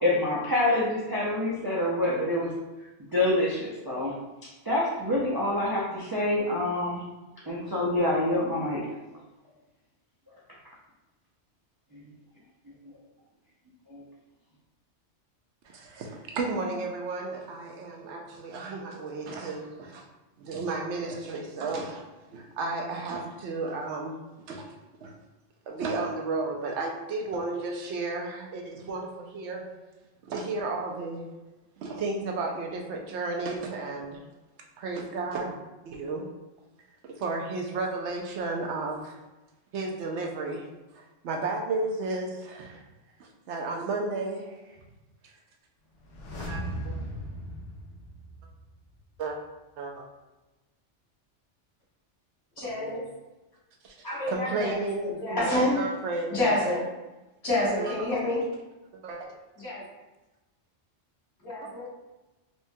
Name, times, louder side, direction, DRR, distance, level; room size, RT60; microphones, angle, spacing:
voice 1, 0.0-2.5 3.1-4.1 4.7-7.0 7.5-8.8 11.9-12.0 13.9-14.0, left 1 dB, 35° right, -7 dB, 0.4 m, -26 dB
voice 2, 15.6-20.0 20.4-22.1 22.3-24.2 24.5-24.7 25.0-25.1 25.7-29.6 30.2-31.2 31.8-34.2 34.8-35.6 35.8-36.3 37.0-39.2 39.7-40.7 40.9-42.8 43.2-44.6 46.5-46.9 49.2-49.4 49.8-50.1 52.6-53.0 53.8-53.9 54.3-56.6 57.7-58.0 58.9-59.3, right 3 dB, 75° right, 1 dB, 0.8 m, -33 dB
sound 1, 46.0-48.9 49.1-49.2, equal, 80° left, 1.1 m, -37 dB
voice 3, 52.6-53.0 54.0-55.9 56.3-56.9 57.4-58.4 59.6-59.8 61.4-61.9, left 1 dB, 65° left, -9 dB, 1.8 m, -28 dB
4.3 x 2.2 x 2.7 m, 1.1 s
omnidirectional pair, 1.2 m